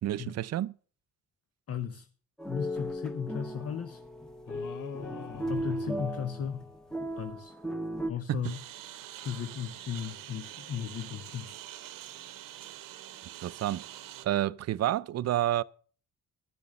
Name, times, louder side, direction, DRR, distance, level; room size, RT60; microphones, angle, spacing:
voice 1, 0.0-0.7 8.3-8.4 13.4-13.8 14.2-15.6, right 13 dB, 50° right, 0.5 m, -29 dB
voice 2, 1.7-2.1 2.5-4.0 5.5-6.7 7.2-7.5 8.1-8.6 9.1-11.6, left 8 dB, 45° left, 0.8 m, -36 dB
sound 1, 2.4-8.1, equal, ahead, 1.1 m, -36 dB
sound 2, 4.5-7.0, left 8 dB, 70° left, 1.1 m, -44 dB
Engine, 8.4-14.3, right 13 dB, 80° right, 0.9 m, -45 dB
12.0 x 7.0 x 6.4 m
cardioid pair, 70°, 32 cm